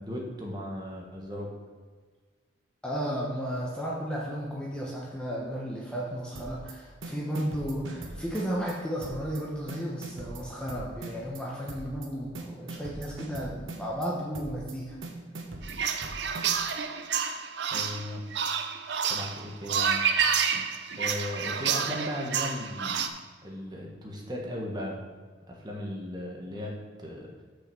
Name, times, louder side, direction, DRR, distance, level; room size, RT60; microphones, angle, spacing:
voice 1, 0.0-1.5 17.7-18.2 19.0-20.0 20.9-23.1 23.4-25.0 25.5-27.3, left 1 dB, 20° right, -1 dB, 1.3 m, -36 dB
voice 2, 2.8-15.0, equal, 5° left, -4 dB, 1.0 m, -34 dB
sound 1, 6.4-6.7 7.0-8.7 9.0-9.4 9.7-11.4 11.7-12.1 12.4-14.1 14.3-14.7 15.0-16.7, right 2 dB, 85° right, 1.2 m, -40 dB
sound 2, 15.6-23.1, right 7 dB, 60° right, 0.6 m, -29 dB
6.2 x 5.8 x 6.9 m, 1.5 s
head